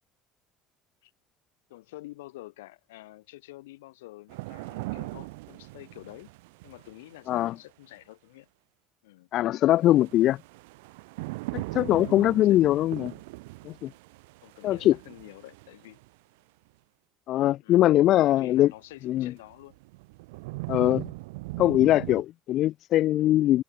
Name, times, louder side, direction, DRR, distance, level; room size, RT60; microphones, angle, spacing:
voice 1, 1.7-6.3 6.6-8.5 9.0-9.3 12.0-12.7 14.4-16.0 17.6-19.8, left 18 dB, 70° left, 4.2 m, -47 dB
sound 1, 4.3-7.4 9.8-16.1 18.7-18.8 19.4-22.2, right 24 dB, 65° right, 2.8 m, -39 dB
voice 2, 9.3-10.4 11.5-13.1 13.6-13.9 14.6-14.9 17.3-18.7 19.0-19.3 20.7-21.0 21.6-23.6, left 14 dB, 50° left, 0.6 m, -22 dB
figure-of-eight pair, 60°, 0 cm